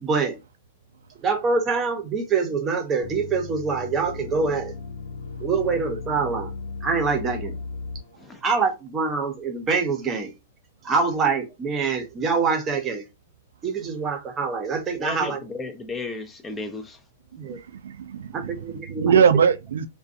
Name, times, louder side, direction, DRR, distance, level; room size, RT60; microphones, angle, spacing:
voice 1, 0.0-0.4 1.2-4.7 5.4-6.5 6.8-7.6 8.4-10.3 10.8-13.0 13.6-15.4 17.4-17.6 18.3-19.1, right 4 dB, 20° right, 0.7 m, -25 dB
sound 1, 3.0-8.2, left 4 dB, 65° left, 0.6 m, -36 dB
voice 2, 15.0-17.0, left 3 dB, 10° left, 0.4 m, -34 dB
voice 3, 17.4-18.6 18.9-19.9, right 7 dB, 85° right, 0.3 m, -21 dB
2.5 x 2.2 x 2.4 m
hypercardioid pair, 145°, 0 cm